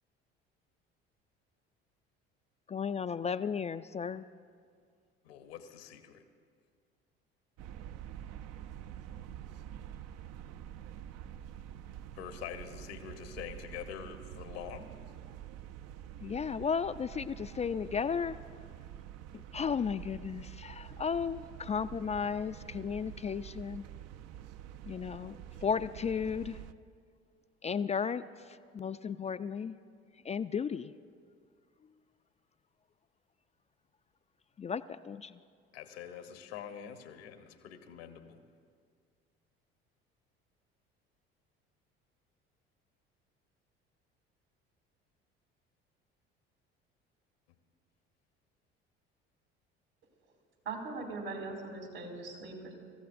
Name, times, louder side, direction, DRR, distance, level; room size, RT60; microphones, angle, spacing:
voice 1, 2.7-4.2 16.2-18.4 19.3-23.9 24.9-26.6 27.6-28.2 28.7-29.7 30.2-30.9 34.6-35.4, left 6 dB, 20° left, 12 dB, 0.4 m, -34 dB
voice 2, 5.2-6.2 12.2-14.9 35.7-38.4, left 8 dB, 80° left, 7 dB, 1.2 m, -45 dB
sound 1, 7.6-26.7, right 10 dB, 55° right, 0.5 m, -47 dB
voice 3, 50.6-52.7, right 3 dB, 85° right, -1 dB, 3.0 m, -40 dB
26.5 x 14.5 x 2.6 m, 2.1 s
hypercardioid pair, 60°, 31 cm